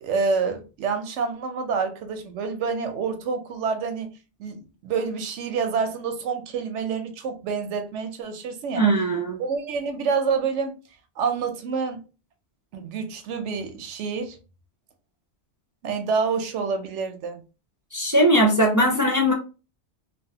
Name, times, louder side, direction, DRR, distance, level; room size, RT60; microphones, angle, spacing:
voice 1, 0.0-4.1 4.4-8.8 9.4-10.7 11.2-12.0 12.7-14.4 15.8-17.4, right 5 dB, 90° right, 1.0 m, -27 dB
voice 2, 8.7-9.4 17.9-19.3, right 1 dB, 30° right, 0.3 m, -20 dB
3.1 x 2.4 x 2.7 m
omnidirectional pair, 1.2 m